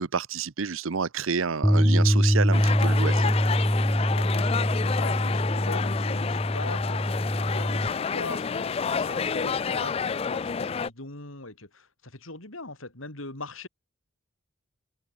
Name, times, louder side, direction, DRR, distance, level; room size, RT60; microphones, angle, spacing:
voice 1, 0.0-3.3, right 5 dB, 75° right, 0.7 m, -29 dB
Bass guitar, 1.6-7.9, equal, 5° left, 1.6 m, -24 dB
sound 1, 2.5-10.9, left 6 dB, 30° left, 0.3 m, -29 dB
voice 2, 4.1-13.7, left 2 dB, 80° left, 5.1 m, -40 dB
open air
head